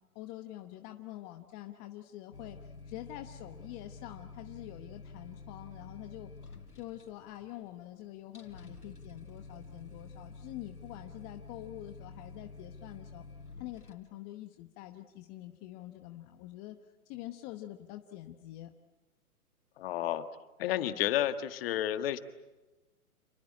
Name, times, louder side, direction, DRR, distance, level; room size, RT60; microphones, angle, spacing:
voice 1, 0.1-2.6 2.9-6.3 6.7-13.2 13.6-16.8 17.1-18.7, left 14 dB, 25° left, 6 dB, 1.0 m, -46 dB
sound 1, 2.3-13.9, left 4 dB, 90° left, 3.7 m, -49 dB
voice 2, 19.8-20.2 20.6-22.2, left 12 dB, 40° left, 10 dB, 1.7 m, -31 dB
28.0 x 21.0 x 8.8 m, 1.1 s
hypercardioid pair, 135°, 44 cm